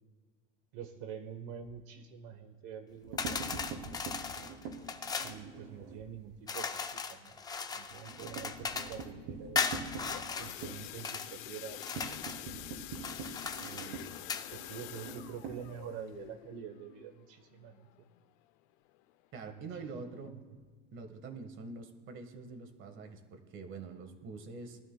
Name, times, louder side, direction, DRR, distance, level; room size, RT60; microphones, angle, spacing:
voice 1, 0.7-3.8 5.2-7.4 7.7-9.7 10.4-12.4 13.6-14.1 14.5-17.9 19.4-19.7 20.1-20.4, right 8 dB, 60° right, 6 dB, 1.1 m, -47 dB
sound 1, 2.9-6.1 6.5-6.7 7.0-7.1 7.4-16.2, right 4 dB, 75° right, 3.4 m, -44 dB
sound 2, 3.2-5.4 6.5-9.1 9.6-11.3 11.7-12.4 13.0-14.5, left 5 dB, 10° left, 0.4 m, -37 dB
sound 3, 9.8-18.4 18.9-19.1 19.4-19.5 20.0-20.1, left 16 dB, 60° left, 0.6 m, -48 dB
voice 2, 19.3-20.4 20.9-24.8, right 4 dB, 35° right, 7 dB, 1.5 m, -45 dB
22.0 x 12.5 x 2.3 m, 1.5 s
supercardioid pair, 145°, 34 cm